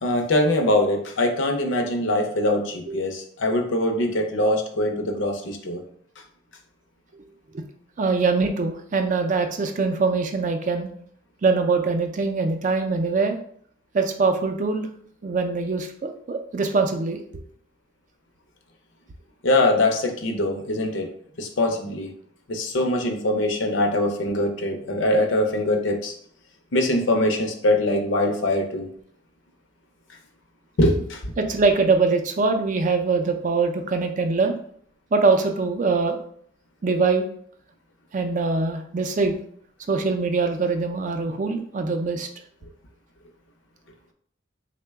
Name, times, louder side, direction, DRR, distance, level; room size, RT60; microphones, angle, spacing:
voice 1, 0.0-5.8 19.4-21.1 21.4-22.1 22.5-26.1 26.7-28.9 30.8-31.3, left 1 dB, 75° left, 4 dB, 0.6 m, -23 dB
voice 2, 8.0-10.9 11.4-13.4 13.9-14.9 15.2-17.2 31.4-34.5 35.1-36.2 36.8-37.3 38.1-39.4 39.9-42.3, right 4 dB, 40° right, 6 dB, 0.4 m, -23 dB
3.6 x 2.2 x 3.4 m, 0.62 s
head